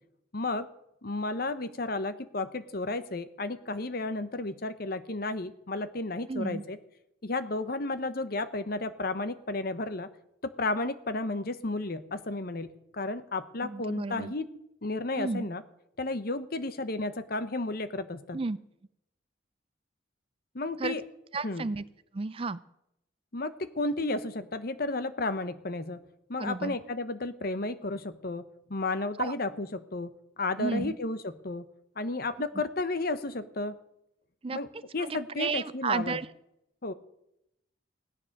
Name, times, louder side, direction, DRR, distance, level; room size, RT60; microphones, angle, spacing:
voice 1, 0.3-0.7 1.0-6.8 7.2-10.1 10.4-14.5 14.8-15.6 16.0-18.4 20.5-21.0 21.4-21.7 23.3-26.0 26.3-28.4 28.7-30.1 30.4-31.6 32.0-33.8 34.5-34.7 34.9-36.2 36.8-36.9, left 2 dB, 50° left, 12 dB, 1.0 m, -32 dB
voice 2, 6.3-6.6 13.6-14.3 15.2-15.5 18.3-18.6 20.8-20.9 21.3-21.8 22.1-22.6 26.4-26.8 29.2-29.3 30.6-31.0 34.4-34.6 35.0-36.3, right 4 dB, 30° right, 16 dB, 0.4 m, -32 dB
16.0 x 10.0 x 6.6 m, 0.81 s
head